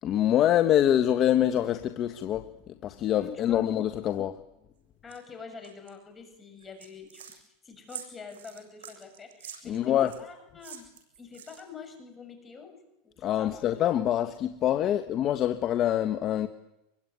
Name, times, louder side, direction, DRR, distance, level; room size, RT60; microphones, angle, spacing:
voice 1, 0.0-2.5 2.8-4.4 9.6-10.1 13.2-16.5, left 11 dB, 40° left, 8 dB, 1.5 m, -25 dB
voice 2, 3.1-3.7 5.0-10.8 11.2-12.8 13.0-13.8 14.8-15.0, left 5 dB, 20° left, 7 dB, 6.9 m, -46 dB
sound 1, 5.1-5.2 5.6-5.9 6.6-7.4 7.9-10.2 10.6-11.9, right 9 dB, 85° right, 7.0 m, -45 dB
25.5 x 23.0 x 9.7 m, 0.85 s
supercardioid pair, 120°, 0 cm